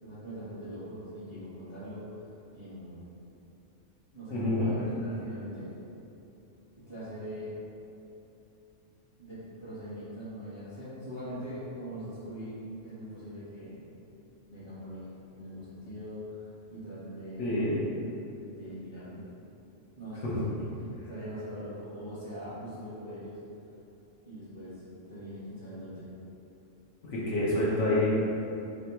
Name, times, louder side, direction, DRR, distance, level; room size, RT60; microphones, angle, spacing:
voice 1, 0.0-2.0 2.5-3.0 4.1-5.7 6.9-7.6 9.2-12.5 12.8-13.8 14.5-17.5 18.5-19.2 20.0-20.7 21.1-23.4 24.2-24.8 25.1-26.0, equal, 50° left, -13 dB, 1.5 m, -42 dB
voice 2, 4.3-4.7 17.4-17.7 20.2-20.4 27.0-28.2, left 1 dB, 70° left, -7 dB, 1.2 m, -27 dB
3.5 x 3.0 x 4.4 m, 2.8 s
omnidirectional pair, 1.3 m